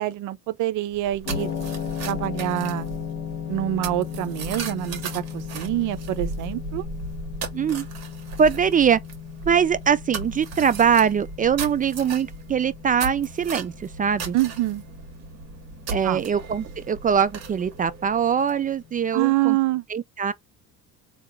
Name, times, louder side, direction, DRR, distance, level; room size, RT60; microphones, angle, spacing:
voice 1, 0.0-1.5 2.1-2.9 3.5-6.8 14.3-14.8 16.0-16.2 19.1-19.8, right 15 dB, 75° right, 0.6 m, -26 dB
sound 1, 0.9-18.8, right 4 dB, 55° right, 1.9 m, -37 dB
sound 2, 1.3-19.5, left 9 dB, 65° left, 1.2 m, -37 dB
voice 2, 7.5-7.9 8.4-9.0 9.5-14.4 15.9-19.6 19.9-20.3, right 7 dB, 25° right, 0.4 m, -22 dB
3.5 x 2.9 x 3.3 m
cardioid pair, 105°, 31 cm